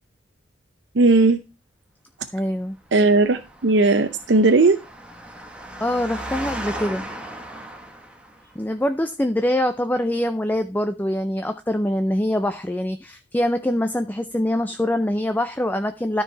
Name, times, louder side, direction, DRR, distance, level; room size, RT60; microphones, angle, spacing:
voice 1, 0.9-1.4 2.9-4.8, right 3 dB, 70° right, 7 dB, 0.7 m, -17 dB
voice 2, 2.3-2.8 5.8-7.1 8.6-16.2, left 1 dB, 10° left, 8 dB, 0.4 m, -24 dB
Engine, 2.9-8.5, right 1 dB, 5° right, 1.2 m, -36 dB
12.5 x 4.7 x 4.5 m, 0.29 s
head